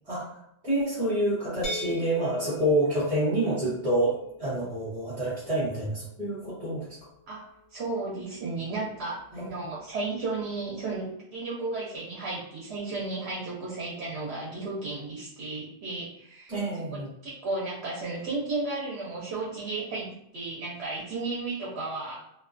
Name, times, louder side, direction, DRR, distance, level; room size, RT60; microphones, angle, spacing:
voice 1, 0.6-4.1 4.4-6.9 9.3-9.5 16.5-17.1, right 1 dB, 35° right, -11 dB, 1.0 m, -27 dB
sound 1, 1.6-7.4, left 1 dB, 80° left, 0.9 m, -42 dB
voice 2, 7.3-16.5 16.9-22.2, right 3 dB, 85° right, -5 dB, 0.9 m, -34 dB
2.3 x 2.2 x 2.4 m, 0.78 s
omnidirectional pair, 1.1 m